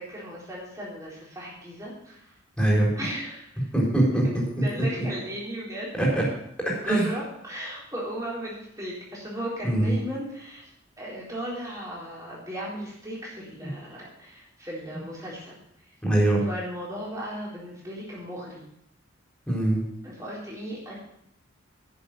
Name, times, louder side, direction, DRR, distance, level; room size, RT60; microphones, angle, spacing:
voice 1, 0.0-2.4 3.0-3.7 4.6-5.9 6.8-10.7 11.0-15.6 16.4-18.7 20.0-20.9, equal, 15° right, -5 dB, 4.1 m, -36 dB
voice 2, 2.6-2.9 3.7-4.2 6.0-6.2 6.8-7.1 9.6-10.0 13.6-13.7 16.0-16.4 19.5-19.8, right 1 dB, 5° left, -4 dB, 4.2 m, -22 dB
10.5 x 7.1 x 7.7 m, 0.73 s
head